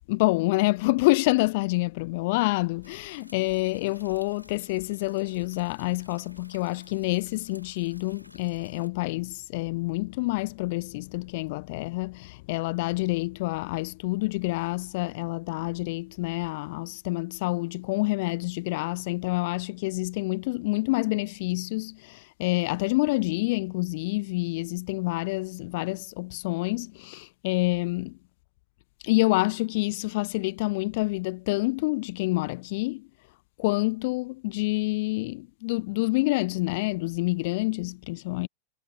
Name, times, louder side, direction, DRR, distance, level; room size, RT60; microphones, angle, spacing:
voice 1, 0.1-28.2 29.0-33.1 33.6-38.5, left 23 dB, 50° left, 1.0 m, -27 dB
sound 1, 2.8-8.9, equal, 90° left, 2.8 m, -54 dB
figure-of-eight pair, 90°, 0 cm